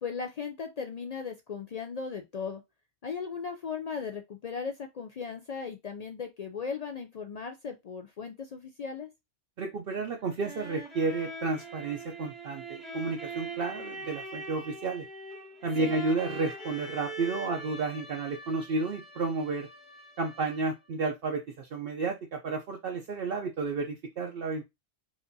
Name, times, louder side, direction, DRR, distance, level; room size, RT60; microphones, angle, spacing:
voice 1, 0.0-2.6 3.0-9.1 15.8-15.9, left 5 dB, 65° left, 0.4 m, -37 dB
voice 2, 9.6-15.1 15.6-19.7 20.2-24.6, right 3 dB, 60° right, 0.8 m, -32 dB
sound 1, 10.2-20.9, right 2 dB, ahead, 0.9 m, -42 dB
4.9 x 2.5 x 2.6 m
omnidirectional pair, 1.2 m